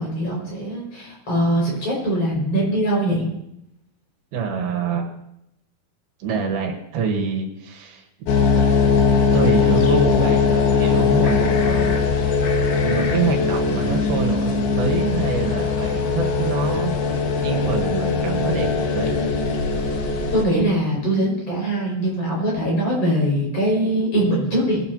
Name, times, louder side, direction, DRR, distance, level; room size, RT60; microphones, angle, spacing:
voice 1, 0.0-3.3 17.9-18.6 20.3-24.8, right 1 dB, 40° left, -4 dB, 6.7 m, -22 dB
voice 2, 4.3-5.1 6.2-8.1 9.3-12.0 12.8-16.9 17.4-19.1, right 5 dB, 75° right, 2 dB, 3.2 m, -26 dB
sound 1, 8.3-20.4, left 5 dB, 75° left, 3.2 m, -20 dB
21.5 x 12.0 x 2.9 m, 0.82 s
omnidirectional pair, 4.4 m